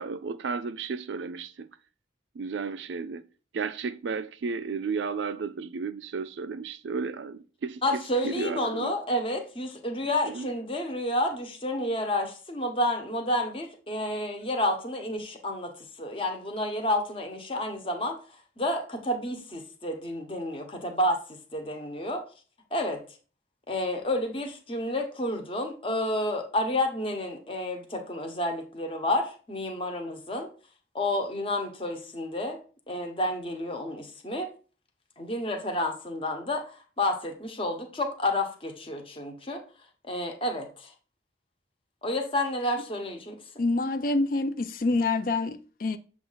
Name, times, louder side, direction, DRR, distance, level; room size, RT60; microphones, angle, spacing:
voice 1, 0.0-1.7 2.4-3.2 3.5-7.8 8.2-8.9 10.4-10.5, right 5 dB, 80° right, 0.4 m, -33 dB
voice 2, 7.8-18.2 18.6-21.2 21.5-22.2 22.7-23.0 23.7-30.5 30.9-32.6 32.9-34.5 35.2-39.6 40.0-40.9 42.0-43.4, left 1 dB, 30° left, 0.9 m, -30 dB
voice 3, 43.6-46.0, left 3 dB, 50° left, 0.4 m, -26 dB
7.0 x 2.5 x 5.5 m
head